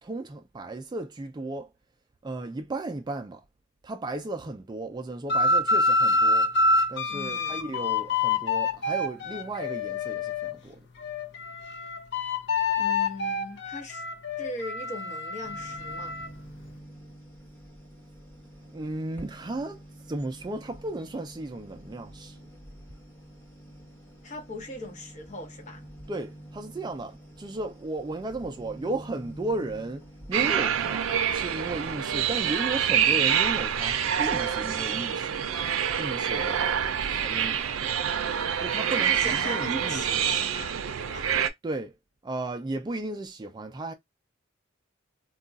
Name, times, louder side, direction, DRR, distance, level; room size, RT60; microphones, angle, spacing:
voice 1, 0.0-1.7 2.2-3.4 3.8-6.5 6.9-10.9 18.6-19.8 20.1-22.5 26.1-35.4 36.0-36.8 37.1-37.8 38.6-40.2 41.6-42.0 42.2-43.9, right 2 dB, 20° right, 0.3 m, -35 dB
sound 1, 5.3-10.6 11.0-16.3, left 3 dB, 60° left, 0.6 m, -27 dB
voice 2, 7.1-7.6 12.8-14.0 14.4-16.2 24.2-25.8 38.9-41.3, left 1 dB, 35° left, 0.8 m, -40 dB
sound 2, 15.4-30.9, equal, 10° left, 1.0 m, -47 dB
sound 3, 30.3-41.5, right 8 dB, 85° right, 0.5 m, -26 dB
2.4 x 2.2 x 3.8 m
head